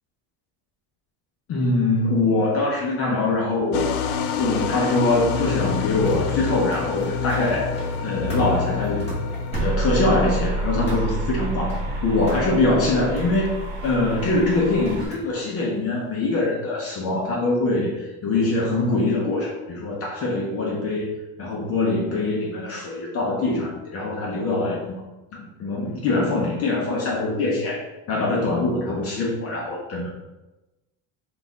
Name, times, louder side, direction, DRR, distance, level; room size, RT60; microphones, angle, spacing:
voice 1, 1.5-3.9 4.4-7.7 8.0-9.3 9.6-13.5 13.8-21.1 21.4-25.0 25.3-30.1, left 2 dB, 35° left, -3 dB, 0.6 m, -23 dB
sound 1, 3.7-14.6, left 7 dB, 85° left, 0.5 m, -29 dB
sound 2, 5.9-15.1, left 1 dB, 15° left, 1.1 m, -37 dB
sound 3, 9.5-15.1, right 2 dB, 85° right, 1.0 m, -28 dB
3.9 x 2.4 x 3.9 m, 1.0 s
cardioid pair, 155°, 43 cm